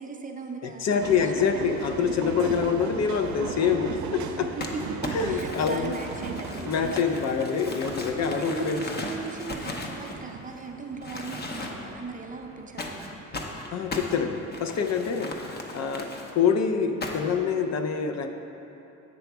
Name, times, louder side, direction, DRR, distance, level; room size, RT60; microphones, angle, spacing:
voice 1, 0.0-1.7 4.6-7.0 8.2-13.2, right 4 dB, 25° right, 3 dB, 0.6 m, -38 dB
voice 2, 0.6-4.5 5.1-5.9 6.6-8.8 13.7-15.3 15.7-18.4, left 6 dB, 60° left, 6 dB, 0.6 m, -26 dB
sound 1, 1.0-15.0 15.4-16.8, right 5 dB, 70° right, 0.6 m, -38 dB
Crumpling crinkling, 4.6-10.6 11.0-12.0 12.8-16.3 17.0-17.4, left 2 dB, 35° left, 0.8 m, -37 dB
9.0 x 3.4 x 6.0 m, 2.9 s
cardioid pair, 90°, 30 cm